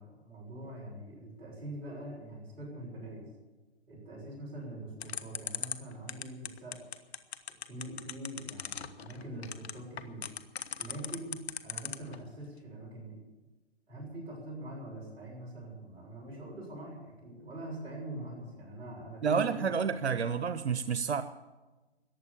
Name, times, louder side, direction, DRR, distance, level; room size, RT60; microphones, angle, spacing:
voice 1, 0.0-3.2 3.9-6.8 7.7-10.3 10.8-13.2 13.9-19.7, right 1 dB, 15° right, -6 dB, 6.2 m, -43 dB
sound 1, 5.0-12.2, left 8 dB, 70° left, 1.2 m, -37 dB
voice 2, 19.2-21.2, right 6 dB, 90° right, 11 dB, 0.8 m, -29 dB
14.5 x 10.0 x 8.6 m, 1.2 s
hypercardioid pair, 150°, 33 cm